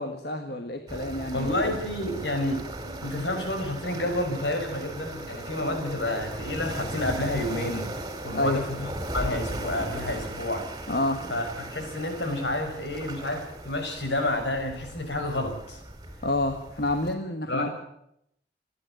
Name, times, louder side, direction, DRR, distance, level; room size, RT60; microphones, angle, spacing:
voice 1, 0.0-1.7 8.3-8.6 10.9-11.2 16.2-17.7, left 1 dB, 60° left, 5 dB, 1.7 m, -29 dB
sound 1, 0.9-17.1, right 1 dB, 20° right, 3.1 m, -37 dB
voice 2, 1.3-7.9 8.2-10.7 11.3-15.8 17.5-17.7, left 1 dB, 80° left, 5 dB, 5.7 m, -30 dB
28.5 x 11.5 x 9.2 m, 0.77 s
head